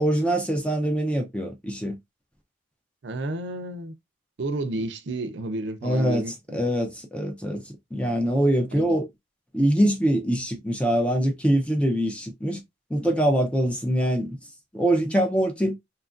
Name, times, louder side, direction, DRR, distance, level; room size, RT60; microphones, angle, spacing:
voice 1, 0.0-1.9 5.8-6.3 6.5-9.0 9.5-12.6 12.9-14.4 14.7-15.7, right 1 dB, 5° left, 0.4 m, -23 dB
voice 2, 3.0-3.9 4.4-6.6 8.7-8.9 15.6-15.7, right 2 dB, 60° right, 0.4 m, -31 dB
2.9 x 2.4 x 2.4 m
head